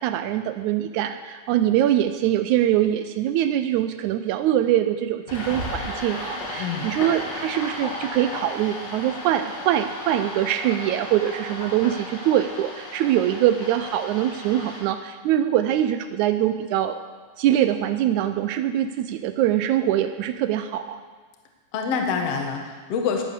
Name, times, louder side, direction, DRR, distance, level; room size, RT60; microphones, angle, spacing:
voice 1, 0.0-17.0 17.4-21.0, right 11 dB, 90° right, 9 dB, 1.6 m, -23 dB
sound 1, 5.3-14.8, left 1 dB, 70° left, 4.8 m, -34 dB
voice 2, 6.5-6.9 21.7-23.2, left 5 dB, 55° left, 2 dB, 2.1 m, -26 dB
20.0 x 8.5 x 6.7 m, 1.5 s
omnidirectional pair, 4.1 m